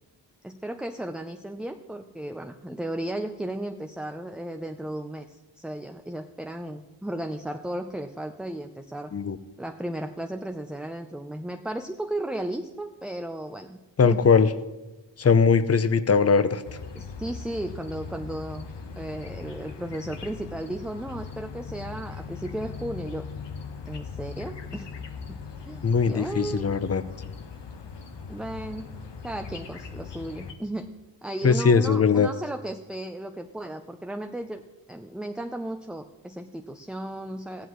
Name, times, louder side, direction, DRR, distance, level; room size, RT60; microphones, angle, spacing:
voice 1, 0.4-9.1 9.6-14.3 16.9-18.7 19.0-23.3 23.9-24.9 25.3-25.4 25.6-26.8 28.3-28.9 29.2-30.9 31.2-34.6 34.9-37.7, right 1 dB, ahead, 5 dB, 0.6 m, -35 dB
voice 2, 14.0-14.5 15.2-16.6 25.8-27.0 31.4-32.3, left 5 dB, 35° left, 14 dB, 0.7 m, -20 dB
sound 1, 16.6-30.5, left 5 dB, 65° left, 1.2 m, -40 dB
14.5 x 10.0 x 3.1 m, 1.1 s
cardioid pair, 50°, 45 cm